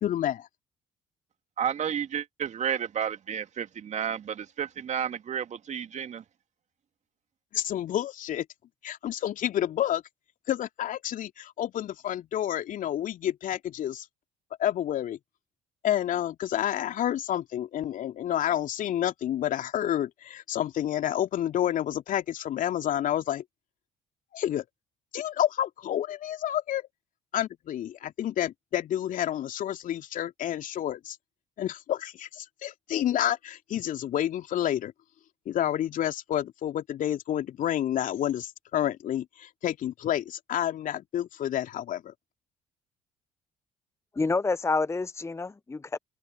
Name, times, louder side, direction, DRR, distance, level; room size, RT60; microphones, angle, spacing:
voice 1, 0.0-0.5 7.5-8.5 8.8-10.0 10.5-14.1 14.6-15.2 15.8-23.4 24.3-24.6 25.1-26.9 27.3-31.2 31.6-34.9 35.5-42.1, left 11 dB, 50° left, 2.7 m, -29 dB
voice 2, 1.6-6.2, right 8 dB, 45° right, 2.5 m, -31 dB
voice 3, 44.1-46.0, left 3 dB, 15° left, 0.9 m, -28 dB
figure-of-eight pair, 50°, 17 cm